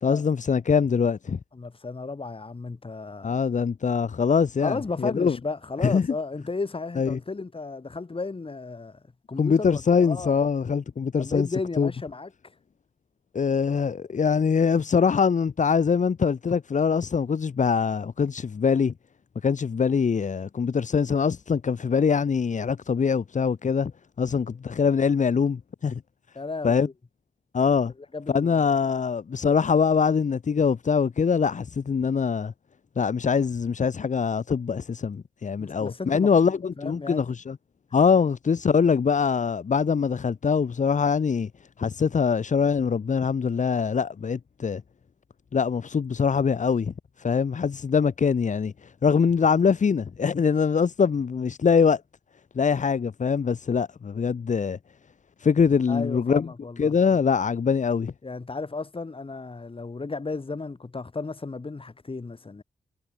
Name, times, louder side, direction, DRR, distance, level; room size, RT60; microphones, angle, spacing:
voice 1, 0.0-1.4 3.2-5.4 5.8-6.1 7.0-7.2 9.4-11.5 11.8-11.9 13.3-18.9 19.4-23.9 24.2-26.0 26.6-26.9 27.5-27.9 28.3-32.5 33.0-37.6 37.9-41.5 41.8-44.8 45.5-52.0 52.5-54.8 55.4-56.5 56.8-58.1, left 6 dB, 60° left, 2.8 m, -23 dB
voice 2, 1.5-3.3 4.6-9.0 9.3-10.3 11.2-12.3 24.2-24.4 26.3-26.9 28.1-28.7 35.6-37.3 55.9-57.0 58.2-62.6, left 3 dB, 40° left, 5.8 m, -34 dB
supercardioid pair, 45°, 14 cm